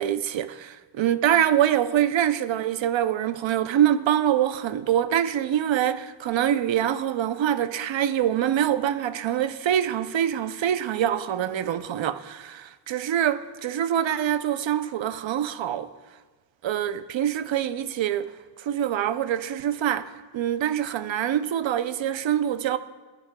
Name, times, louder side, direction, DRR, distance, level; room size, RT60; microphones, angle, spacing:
voice 1, 0.0-15.9 16.6-18.3 18.6-22.8, right 10 dB, 85° right, 0.6 m, -25 dB
16.0 x 11.0 x 2.2 m
wide cardioid pair, 80°, 44 cm